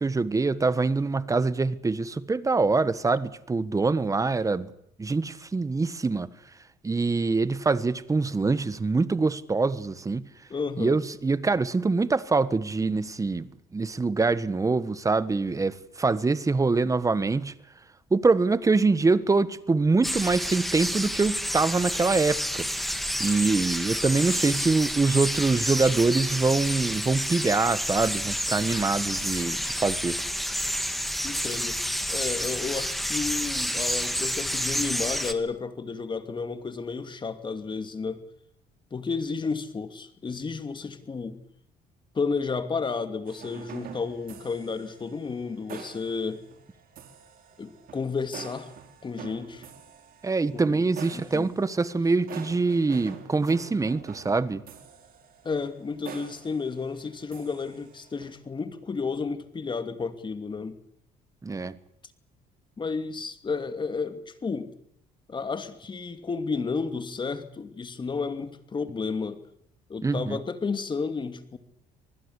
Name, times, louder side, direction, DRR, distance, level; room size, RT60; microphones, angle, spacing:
voice 1, 0.0-4.7 5.0-6.3 6.8-10.2 10.8-13.5 13.7-17.5 18.1-22.7 23.2-30.2 50.2-54.6 61.4-61.7 70.0-70.4, right 3 dB, 20° right, 1.4 m, -24 dB
voice 2, 10.5-11.0 31.2-31.8 32.1-38.2 38.9-41.4 42.1-46.4 47.6-48.7 49.0-49.6 50.5-50.8 51.1-51.5 55.4-60.8 62.8-64.7 65.3-69.4 69.9-71.6, left 4 dB, 30° left, 2.6 m, -32 dB
sound 1, 20.0-35.3, equal, ahead, 2.4 m, -29 dB
sound 2, 43.3-58.4, right 7 dB, 60° right, 4.2 m, -46 dB
26.0 x 20.0 x 8.3 m
cardioid pair, 110°, 17 cm